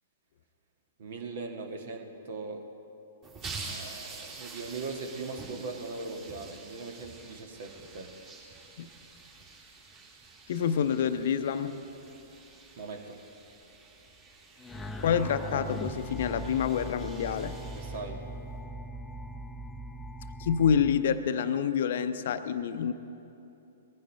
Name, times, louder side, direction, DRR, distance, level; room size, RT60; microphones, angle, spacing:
voice 1, 1.0-2.7 3.7-8.1 12.8-13.2 17.7-18.2, right 3 dB, 55° right, 4 dB, 1.7 m, -40 dB
sound 1, 3.2-18.6, right 4 dB, 30° right, 3.4 m, -47 dB
voice 2, 10.5-11.8 15.0-17.6 20.4-22.9, left 7 dB, 55° left, 11 dB, 0.7 m, -27 dB
sound 2, 14.6-20.9, right 1 dB, 5° left, 0.7 m, -40 dB
21.0 x 15.0 x 3.4 m, 2.9 s
figure-of-eight pair, 110°, 0 cm